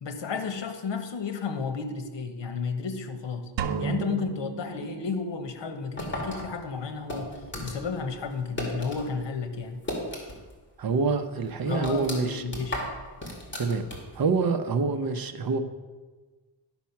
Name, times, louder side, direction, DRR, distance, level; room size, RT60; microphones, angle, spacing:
voice 1, 0.0-3.5 3.8-7.3 7.6-9.8 11.7-12.8, left 5 dB, 80° left, 7 dB, 1.2 m, -32 dB
sound 1, 3.6-5.6, right 6 dB, 90° right, 0.8 m, -33 dB
sound 2, 6.0-9.1 9.4-10.6 10.9-11.0 11.4-14.3, left 1 dB, 25° left, 2.5 m, -36 dB
voice 2, 10.8-12.4 13.6-13.8 14.1-15.6, right 4 dB, 55° right, 7 dB, 0.9 m, -26 dB
11.5 x 5.9 x 5.8 m, 1.3 s
wide cardioid pair, 125°, 43 cm